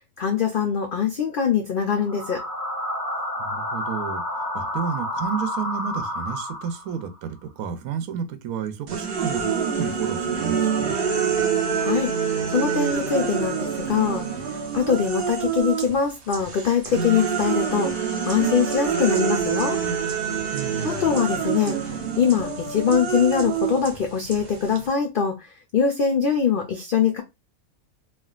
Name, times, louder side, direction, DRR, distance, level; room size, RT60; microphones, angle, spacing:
voice 1, 0.2-2.4 11.8-12.1 12.5-14.2 14.7-17.9 18.3-19.8 20.8-21.8 22.2-25.3 25.7-27.2, left 7 dB, 70° left, 0.5 m, -22 dB
sound 1, 2.0-7.1, left 1 dB, 15° right, 1.2 m, -30 dB
voice 2, 3.4-11.0 20.5-21.0, right 7 dB, 85° right, 1.1 m, -31 dB
sound 2, 8.9-16.0 16.3-24.9, right 7 dB, 50° right, 0.8 m, -26 dB
3.3 x 2.4 x 2.3 m
omnidirectional pair, 1.5 m